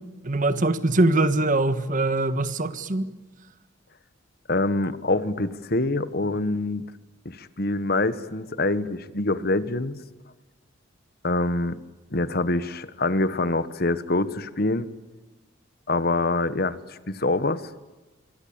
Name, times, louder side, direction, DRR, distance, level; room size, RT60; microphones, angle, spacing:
voice 1, 0.2-3.1, right 2 dB, 40° right, 1.5 m, -22 dB
voice 2, 4.5-6.8 7.2-10.0 11.2-11.8 12.1-14.9 15.9-17.6, left 2 dB, 50° left, 1.3 m, -25 dB
26.0 x 24.5 x 8.8 m
head